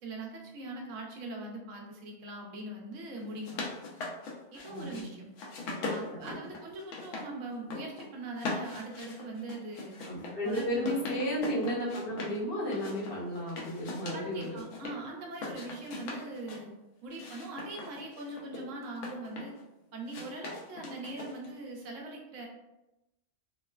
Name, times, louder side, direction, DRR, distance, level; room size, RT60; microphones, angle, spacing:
voice 1, 0.0-3.7 4.5-5.2 5.8-10.0 10.4-11.1 14.1-16.7 17.0-19.5 19.9-22.5, right 2 dB, 90° right, -1 dB, 1.0 m, -41 dB
sound 1, 3.2-5.0 5.4-7.3 7.5-8.1 8.4-12.4 12.7-14.9 15.3-16.6 17.1-19.6 20.1-21.6, left 3 dB, 85° left, 0.9 m, -40 dB
voice 2, 4.7-5.3 6.2-6.4 10.0-14.6, equal, 55° left, -6 dB, 0.9 m, -33 dB
3.0 x 2.1 x 2.2 m, 0.96 s
omnidirectional pair, 1.2 m